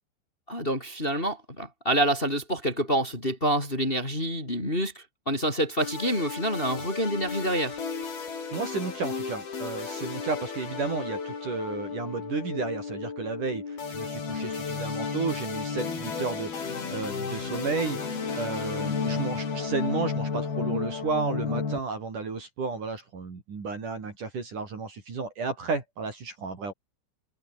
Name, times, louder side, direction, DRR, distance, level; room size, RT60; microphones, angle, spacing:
voice 1, 0.5-7.8, right 1 dB, 10° left, 4.8 m, -27 dB
sound 1, 5.8-21.8, left 5 dB, 55° left, 7.5 m, -33 dB
voice 2, 8.5-18.0 18.3-26.7, right 4 dB, 45° right, 5.4 m, -32 dB
omnidirectional pair, 5.4 m